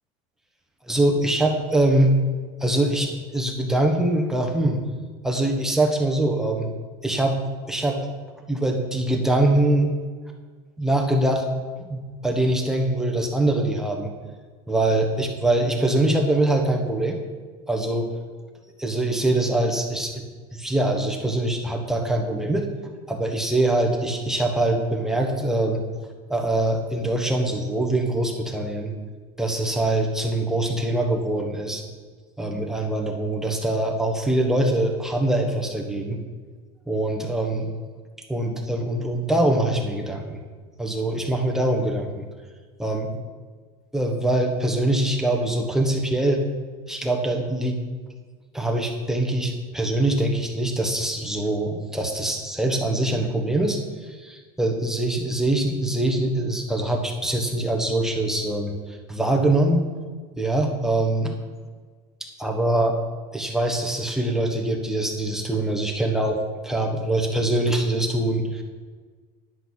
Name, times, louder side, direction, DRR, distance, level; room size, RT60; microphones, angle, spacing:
voice 1, 0.8-2.2 2.6-4.8 5.2-6.7 7.0-7.4 7.7-8.0 8.5-9.9 10.8-11.4 11.8-14.1 14.7-17.2 17.7-18.1 18.8-20.2 20.5-22.7 23.1-25.8 26.3-28.9 29.4-31.8 32.4-36.2 36.9-37.7 38.3-40.4 40.8-42.2 42.8-43.1 43.9-46.4 46.9-47.8 48.5-59.8 60.4-61.3 62.4-63.0 63.3-68.6, right 1 dB, 5° right, 1 dB, 1.2 m, -23 dB
11.0 x 7.8 x 6.3 m, 1.5 s
cardioid pair, 150°, 19 cm